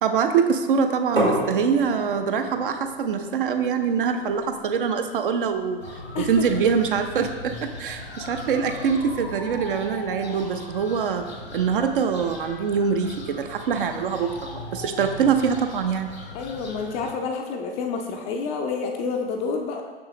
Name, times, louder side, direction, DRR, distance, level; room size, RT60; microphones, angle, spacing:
voice 1, 0.0-5.8 6.2-11.2 11.5-16.1, right 6 dB, 60° right, 6 dB, 0.6 m, -24 dB
sound 1, 1.2-6.8, equal, 90° right, 1.9 m, -32 dB
sound 2, 5.8-17.1, left 2 dB, 85° left, 1.0 m, -38 dB
voice 2, 16.3-19.8, left 4 dB, 20° left, 3 dB, 0.4 m, -29 dB
6.1 x 6.1 x 2.9 m, 1.4 s
figure-of-eight pair, 100°, 31 cm